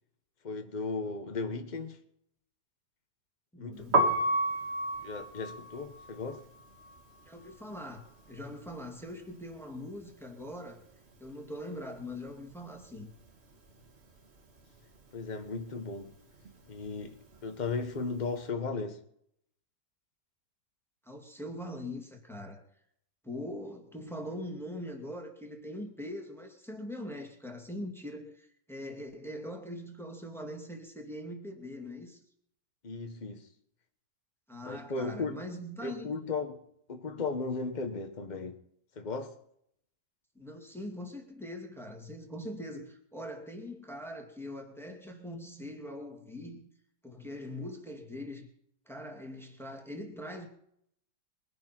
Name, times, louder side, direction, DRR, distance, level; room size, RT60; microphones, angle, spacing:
voice 1, 0.4-2.0 3.6-4.1 5.0-6.4 15.1-16.1 16.7-19.0 32.8-33.5 34.6-35.4 35.8-36.6 36.9-38.6 38.9-39.4, left 4 dB, 30° left, 1.2 m, -36 dB
voice 2, 3.5-4.1 7.2-10.8 11.2-13.1 21.0-22.6 23.2-32.2 34.5-36.1 40.4-46.7 47.0-48.5 48.9-50.5, left 1 dB, ahead, 2.2 m, -42 dB
Piano, 3.8-9.7 10.0-11.6 11.9-18.3, right 1 dB, 40° right, 1.7 m, -34 dB
22.5 x 10.5 x 4.5 m
omnidirectional pair, 1.8 m